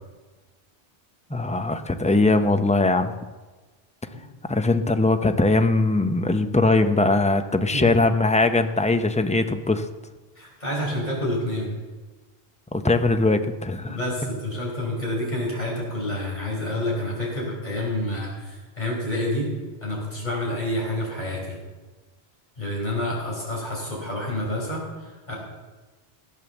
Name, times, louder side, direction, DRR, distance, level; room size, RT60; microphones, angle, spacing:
voice 1, 1.3-3.1 4.4-9.9 12.7-14.0, left 2 dB, 10° left, 8 dB, 0.4 m, -21 dB
voice 2, 10.3-11.7 13.8-19.5 19.8-21.6 22.6-25.3, left 1 dB, 45° left, -3 dB, 4.9 m, -28 dB
14.5 x 8.6 x 7.1 m, 1.3 s
omnidirectional pair, 1.1 m